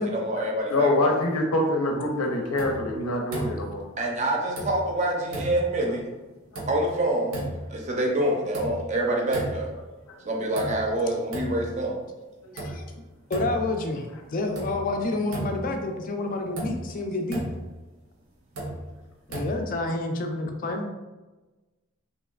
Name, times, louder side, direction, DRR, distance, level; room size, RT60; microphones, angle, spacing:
voice 1, 0.0-1.1 4.0-6.1 6.7-7.4 7.7-9.7 10.2-12.0, right 1 dB, 35° right, 0 dB, 0.5 m, -26 dB
voice 2, 0.7-3.8 6.5-6.6 10.1-10.2 12.6-12.7, left 2 dB, 85° left, 2 dB, 0.6 m, -25 dB
sound 1, 2.6-2.9 3.3-3.8 4.5-5.0 5.3-5.8 6.5-7.0 7.3-7.8 8.5-9.0 9.3-9.9 10.5-11.0 11.3-11.8 12.6-12.9 13.3-13.8 14.5-14.9 15.3-15.8 16.6-16.9 17.3-17.7 18.5-18.9 19.3-19.8, right 1 dB, 80° right, 0.7 m, -34 dB
voice 3, 12.5-12.8 13.3-14.1 14.3-17.4 19.3-20.8, left 2 dB, 40° left, 4 dB, 0.3 m, -28 dB
3.2 x 2.8 x 2.3 m, 1.2 s
head